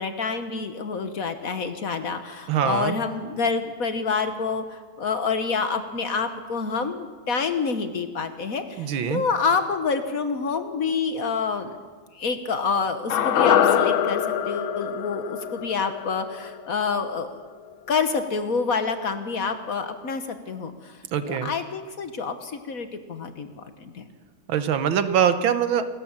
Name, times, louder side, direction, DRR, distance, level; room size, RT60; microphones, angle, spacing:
voice 1, 0.0-11.7 12.1-17.4 17.9-20.9 21.3-24.0, left 5 dB, 50° left, 8 dB, 1.4 m, -27 dB
voice 2, 2.5-3.0 8.8-9.2 21.1-21.5 24.5-25.9, right 8 dB, 80° right, 10 dB, 1.8 m, -23 dB
sound 1, 13.1-17.4 17.7-17.8, left 9 dB, 85° left, 1.8 m, -24 dB
27.5 x 13.0 x 7.3 m, 1.5 s
omnidirectional pair, 2.1 m